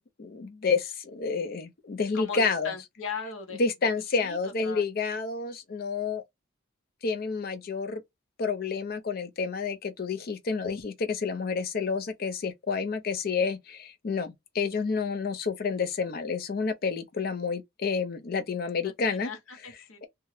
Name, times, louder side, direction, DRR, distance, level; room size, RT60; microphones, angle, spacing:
voice 1, 0.0-2.7 3.6-6.2 7.0-8.0 8.4-19.3, left 4 dB, 45° left, 0.4 m, -29 dB
voice 2, 2.1-4.4 4.6-4.8 18.8-20.1, left 5 dB, 75° left, 0.8 m, -39 dB
2.8 x 2.2 x 3.0 m
head